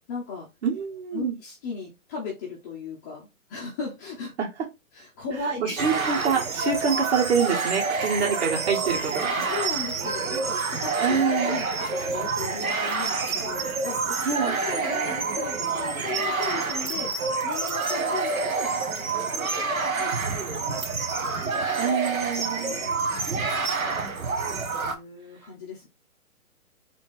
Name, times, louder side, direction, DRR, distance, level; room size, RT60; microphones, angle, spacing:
voice 1, 0.1-0.5 1.1-4.3 4.9-5.8 9.4-14.2 14.4-17.1 17.4-19.6 19.9-20.9 21.3-21.5 22.4-22.5 22.8-23.7 24.0-24.2 24.8-25.9, left 4 dB, 15° left, -3 dB, 0.6 m, -37 dB
voice 2, 0.6-1.4 5.6-9.4 10.6-10.7 11.0-11.6 14.2-14.6 21.8-22.8, right 6 dB, 50° right, 0 dB, 2.0 m, -26 dB
sound 1, 5.8-24.9, right 4 dB, 75° right, 1.2 m, -28 dB
4.1 x 3.0 x 3.4 m, 0.23 s
figure-of-eight pair, 135°, 42 cm